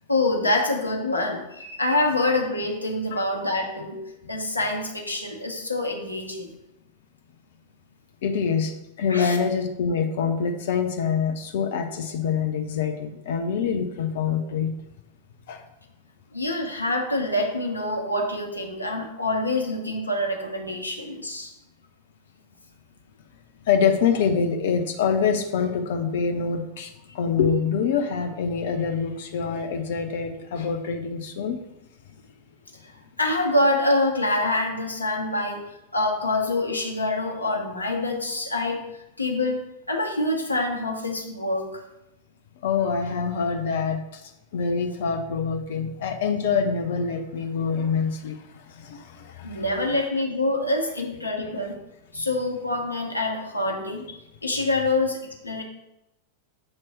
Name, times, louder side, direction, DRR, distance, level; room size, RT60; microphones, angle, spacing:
voice 1, 0.1-4.0 4.3-6.5 9.1-9.4 16.3-21.5 32.8-32.9 33.2-35.6 35.9-38.8 39.2-41.8 49.4-51.8 52.1-54.1 54.4-55.6, left 2 dB, 80° left, 2 dB, 0.9 m, -26 dB
voice 2, 8.2-14.7 15.5-15.6 23.7-31.6 42.6-44.2 44.5-48.4 48.8-49.6, left 6 dB, 55° left, 5 dB, 0.5 m, -25 dB
7.5 x 3.0 x 4.6 m, 0.89 s
figure-of-eight pair, 90°, 0 cm